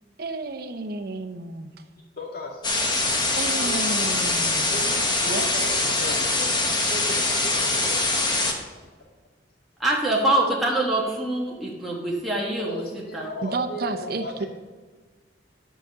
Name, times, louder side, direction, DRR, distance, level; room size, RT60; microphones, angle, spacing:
voice 1, 0.2-1.7 3.3-4.7 5.3-5.5 13.4-14.5, right 3 dB, 55° right, 7 dB, 0.7 m, -31 dB
voice 2, 2.2-2.7 3.5-4.0 4.7-8.3 12.7-14.5, left 1 dB, 55° left, -1 dB, 2.0 m, -36 dB
sound 1, 2.6-8.5, left 2 dB, 25° left, 1.2 m, -23 dB
voice 3, 9.8-12.8 13.1-13.2, right 1 dB, ahead, -5 dB, 1.2 m, -24 dB
11.0 x 4.9 x 6.7 m, 1.4 s
head